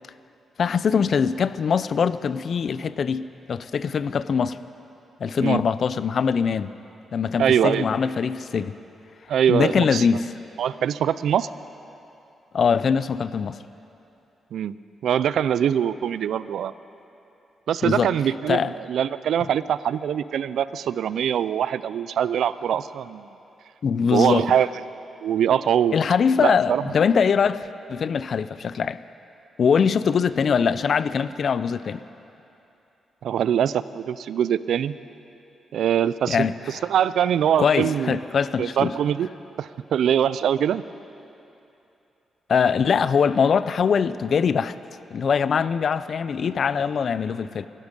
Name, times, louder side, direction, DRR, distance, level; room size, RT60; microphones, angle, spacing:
voice 1, 0.6-4.6 5.2-6.8 7.1-8.8 9.5-10.3 12.5-13.6 17.8-18.1 18.5-18.7 23.8-24.5 25.9-29.0 29.6-32.0 36.3-36.5 37.6-38.9 42.5-44.8 45.1-47.7, left 6 dB, 50° left, 15 dB, 0.4 m, -22 dB
voice 2, 7.4-7.9 9.3-10.1 10.6-11.5 14.5-14.8 15.0-16.7 17.7-23.3 24.1-24.7 25.2-26.0 26.4-26.8 33.2-34.9 35.7-36.4 36.7-38.2 38.6-39.3 39.6-40.8, right 9 dB, 75° right, 16 dB, 0.4 m, -23 dB
22.0 x 12.0 x 5.3 m, 2.8 s
wide cardioid pair, 145°, 0 cm